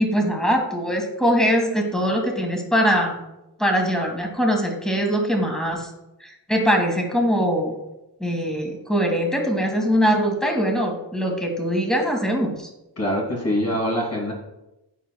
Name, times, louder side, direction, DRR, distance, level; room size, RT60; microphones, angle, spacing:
voice 1, 0.0-3.2 3.6-5.9 6.2-7.8 8.2-12.7, equal, ahead, 2 dB, 1.8 m, -22 dB
voice 2, 13.0-14.3, equal, 35° left, -2 dB, 2.8 m, -24 dB
13.5 x 4.6 x 2.3 m, 0.93 s
cardioid pair, 55°, 43 cm